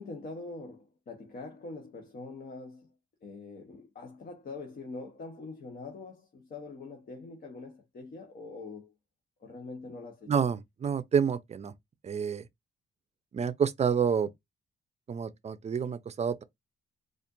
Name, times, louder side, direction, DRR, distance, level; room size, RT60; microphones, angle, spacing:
voice 1, 0.0-2.9 3.2-8.9 9.4-10.3, left 3 dB, 45° left, 1.1 m, -44 dB
voice 2, 10.3-11.7 12.0-12.4 13.3-14.3 15.1-16.4, right 7 dB, 35° right, 0.5 m, -28 dB
4.2 x 2.5 x 2.6 m
cardioid pair, 90°, 20 cm